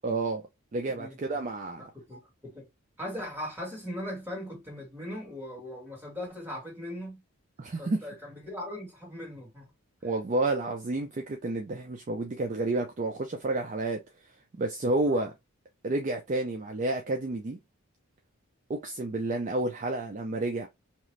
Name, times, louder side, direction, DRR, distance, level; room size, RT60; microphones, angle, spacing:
voice 1, 0.0-0.4 0.7-1.9 7.6-8.0 10.0-14.0 14.6-15.3 15.8-17.6 18.7-20.7, right 2 dB, 35° right, 0.4 m, -30 dB
voice 2, 0.9-1.4 1.8-2.7 3.0-7.2 7.8-9.7 15.1-15.3, left 1 dB, 10° right, 1.7 m, -39 dB
2.9 x 2.5 x 3.1 m
head